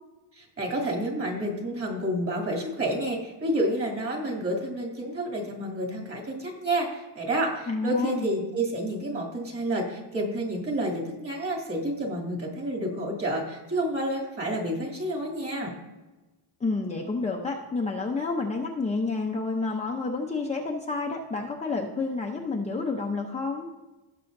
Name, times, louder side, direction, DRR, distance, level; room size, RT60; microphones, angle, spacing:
voice 1, 0.4-15.7, right 1 dB, 30° right, 0 dB, 2.7 m, -29 dB
voice 2, 7.7-8.3 16.6-23.7, left 3 dB, 15° left, -1 dB, 0.7 m, -29 dB
18.0 x 6.3 x 2.7 m, 1.1 s
cardioid pair, 145°, 46 cm